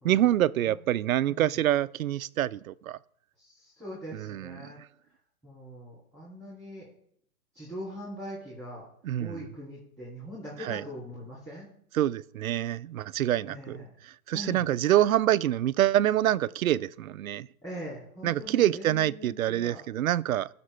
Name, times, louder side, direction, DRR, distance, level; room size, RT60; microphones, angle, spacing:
voice 1, 0.0-3.0 4.1-4.5 9.0-9.4 10.6-10.8 11.9-13.8 14.3-17.5 18.2-20.5, right 12 dB, 65° right, 0.5 m, -26 dB
voice 2, 1.3-1.6 3.4-4.8 5.4-6.9 7.5-8.8 9.2-11.7 13.4-13.9 14.3-14.6 14.9-15.1 17.6-19.8, equal, 5° left, 2.7 m, -42 dB
15.0 x 5.9 x 3.3 m
hypercardioid pair, 160°, 45 cm